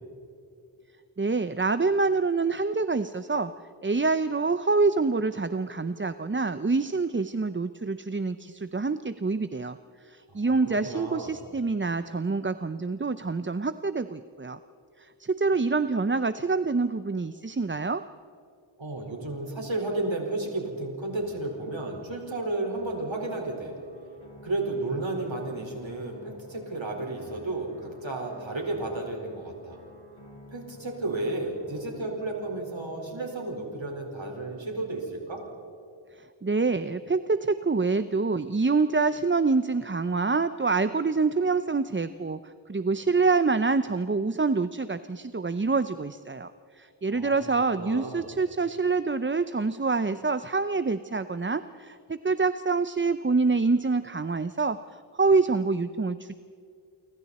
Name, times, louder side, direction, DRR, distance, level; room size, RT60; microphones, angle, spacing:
voice 1, 1.2-3.5 3.8-9.8 10.0-14.6 15.0-18.0 36.1-56.3, right 4 dB, 25° right, 12 dB, 0.6 m, -26 dB
voice 2, 10.3-11.3 18.8-23.7 24.4-29.8 30.5-35.4 47.1-47.4 47.7-48.3, right 2 dB, 75° right, 1 dB, 4.8 m, -33 dB
sound 1, 21.2-33.2, left 1 dB, 75° left, 7.3 m, -51 dB
29.0 x 24.5 x 4.2 m, 2.5 s
wide cardioid pair, 60°, 46 cm